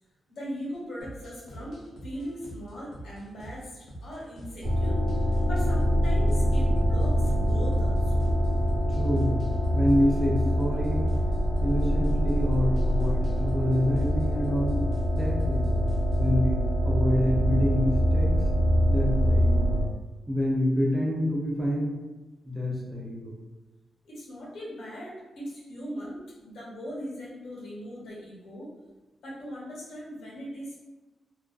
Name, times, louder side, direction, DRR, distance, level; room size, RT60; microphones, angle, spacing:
voice 1, 0.4-5.0 5.5-8.2 24.0-28.7 29.2-30.8, equal, 85° left, -6 dB, 0.9 m, -39 dB
sound 1, 1.0-16.4, right 1 dB, 70° left, 0.5 m, -45 dB
sound 2, 4.6-19.8, equal, 70° right, 0.7 m, -24 dB
voice 2, 9.0-9.5 9.7-11.2 11.6-14.8 15.1-15.8 16.2-18.3 18.9-19.8 20.3-22.0 22.4-23.4, equal, 10° right, -4 dB, 0.4 m, -27 dB
2.3 x 2.3 x 2.3 m, 1.2 s
wide cardioid pair, 180°, 0 cm